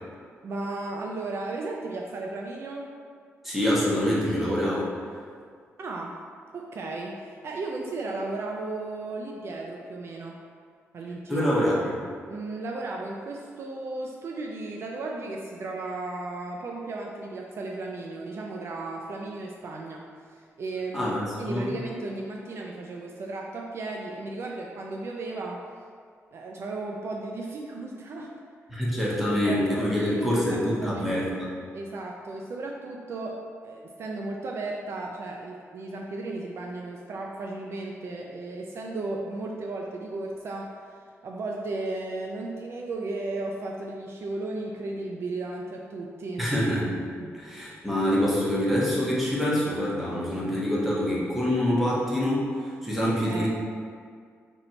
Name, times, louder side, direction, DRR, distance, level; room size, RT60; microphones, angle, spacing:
voice 1, 0.4-2.9 5.8-6.2 6.5-10.4 10.9-11.4 12.3-21.1 21.4-25.6 26.3-28.3 29.3-31.2 31.7-40.7 41.2-46.5 47.2-47.4 53.3-53.5, right 2 dB, 55° right, -1 dB, 0.4 m, -35 dB
voice 2, 3.4-4.9 11.3-12.0 20.9-21.8 28.7-31.5 46.4-46.9 47.3-53.5, equal, 5° right, -7 dB, 1.2 m, -25 dB
4.0 x 2.7 x 4.3 m, 2.1 s
cardioid pair, 100°, 5 cm